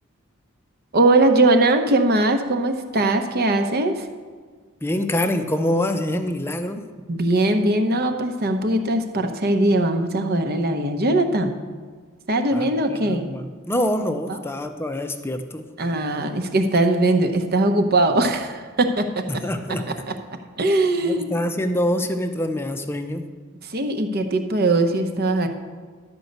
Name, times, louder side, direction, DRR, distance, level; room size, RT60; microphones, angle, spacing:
voice 1, 0.9-4.1 7.1-11.6 12.3-13.3 14.3-14.4 15.8-19.3 20.1-20.2 20.6-21.3 23.6-25.5, right 2 dB, 45° right, 6 dB, 0.9 m, -20 dB
voice 2, 4.8-6.8 12.5-15.7 19.3-19.9 21.0-23.3, left 1 dB, 10° left, 7 dB, 0.6 m, -25 dB
12.0 x 5.3 x 8.0 m, 1.5 s
head